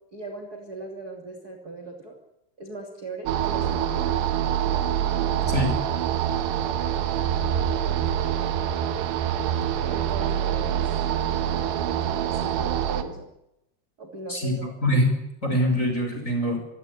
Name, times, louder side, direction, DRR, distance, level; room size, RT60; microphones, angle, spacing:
voice 1, 0.1-2.2 2.6-4.1 5.4-5.7 9.8-10.9 11.8-13.3 14.0-14.8, right 3 dB, 25° right, 2 dB, 3.0 m, -38 dB
sound 1, 3.3-13.0, right 10 dB, 90° right, 3.5 m, -25 dB
voice 2, 14.3-16.6, left 1 dB, 20° left, 4 dB, 5.2 m, -24 dB
24.5 x 17.0 x 9.7 m, 0.86 s
omnidirectional pair, 4.7 m